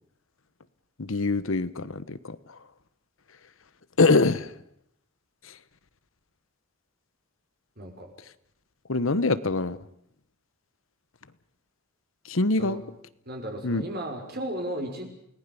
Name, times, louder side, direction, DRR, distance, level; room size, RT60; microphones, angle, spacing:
voice 1, 1.0-2.6 4.0-4.5 5.4-5.6 8.9-9.8 12.3-12.8 13.6-13.9, left 3 dB, 70° left, 15 dB, 1.1 m, -24 dB
voice 2, 7.8-8.1 12.6-12.8 13.3-15.0, right 1 dB, 50° right, 3 dB, 5.8 m, -34 dB
29.0 x 19.0 x 7.0 m, 0.73 s
head